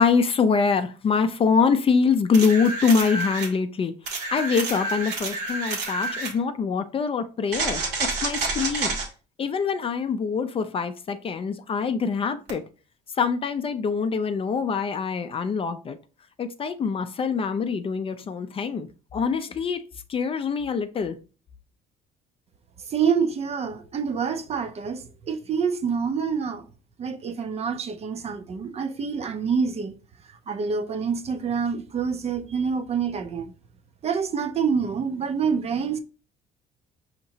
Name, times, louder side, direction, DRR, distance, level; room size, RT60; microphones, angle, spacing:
voice 1, 0.0-3.9 4.3-9.0 9.4-12.6 13.2-16.0 16.4-19.8 20.1-21.2, left 5 dB, 35° left, 0.4 m, -24 dB
sound 1, 2.3-3.5 4.1-6.4 7.5-9.1 12.5-12.6, right 3 dB, 85° right, 1.4 m, -29 dB
voice 2, 22.9-26.6 27.0-29.9 30.5-33.5 34.0-36.0, right 6 dB, 40° right, 0.5 m, -27 dB
5.4 x 2.9 x 2.7 m
cardioid pair, 110°, 17 cm